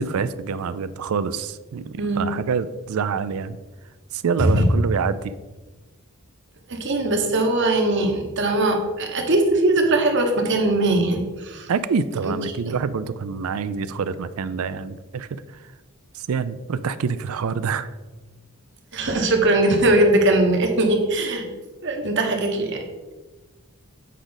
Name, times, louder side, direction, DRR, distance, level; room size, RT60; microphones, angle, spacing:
voice 1, 0.0-3.6 4.1-5.3 11.7-15.4 16.1-17.9, right 5 dB, 70° right, 14 dB, 0.4 m, -26 dB
voice 2, 6.7-11.7 12.2-12.3 18.9-21.4 21.8-22.8, right 2 dB, 55° right, 3 dB, 1.1 m, -20 dB
8.3 x 4.9 x 3.9 m, 1.2 s
head